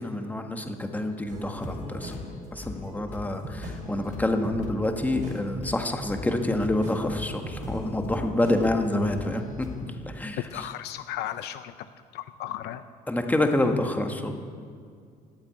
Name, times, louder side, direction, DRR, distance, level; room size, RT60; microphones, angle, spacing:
voice 1, 0.0-2.1 2.5-9.7 10.1-10.7 13.1-14.3, left 1 dB, 10° left, 4 dB, 1.5 m, -27 dB
sound 1, 1.3-9.8, right 1 dB, 50° right, 4.7 m, -41 dB
sound 2, 1.6-10.1, left 3 dB, 45° left, 1.6 m, -42 dB
voice 2, 10.3-11.7 12.1-12.8, left 12 dB, 80° left, 10 dB, 0.6 m, -35 dB
15.0 x 8.1 x 9.2 m, 2.2 s
cardioid pair, 110°, 17 cm